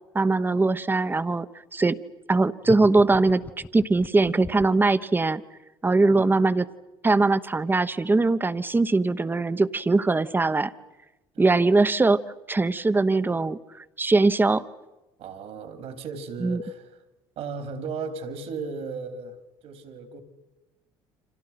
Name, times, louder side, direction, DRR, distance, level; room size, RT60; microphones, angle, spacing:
voice 1, 0.1-1.5 1.7-2.0 2.3-3.4 3.7-5.4 5.8-6.6 7.0-10.7 11.4-12.2 12.5-13.6 14.0-14.6 16.4-16.6, right 3 dB, 20° right, 13 dB, 1.1 m, -21 dB
sound 1, 2.6-4.9, left 3 dB, 15° left, 1.1 m, -38 dB
voice 2, 6.1-6.4 11.3-11.8 15.2-17.0 17.4-19.4 19.6-20.2, right 4 dB, 65° right, 9 dB, 3.7 m, -36 dB
29.5 x 26.5 x 6.0 m, 1.0 s
supercardioid pair, 80°, 11 cm